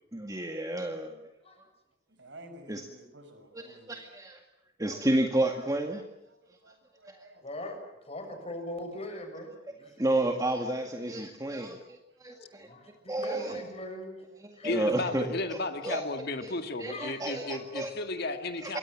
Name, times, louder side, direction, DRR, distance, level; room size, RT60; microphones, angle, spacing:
voice 1, 0.1-1.2 2.7-2.8 3.5-4.4 4.8-6.0 7.1-7.3 10.0-12.7 13.1-13.7 14.4-15.6 15.8-16.0 16.4-17.9 18.6-18.8, right 1 dB, 20° right, 4 dB, 1.9 m, -31 dB
voice 2, 2.1-4.0 6.3-7.5 12.1-12.2 12.4-13.1 13.8-14.7 18.6-18.8, right 1 dB, 70° right, 7 dB, 6.3 m, -54 dB
voice 3, 7.4-7.8 8.0-10.0 12.4-14.2 14.5-14.7 16.9-17.7, left 1 dB, 35° left, 5 dB, 7.4 m, -41 dB
voice 4, 14.6-18.8, left 2 dB, 60° left, 7 dB, 2.1 m, -34 dB
27.0 x 23.5 x 7.4 m, 0.85 s
head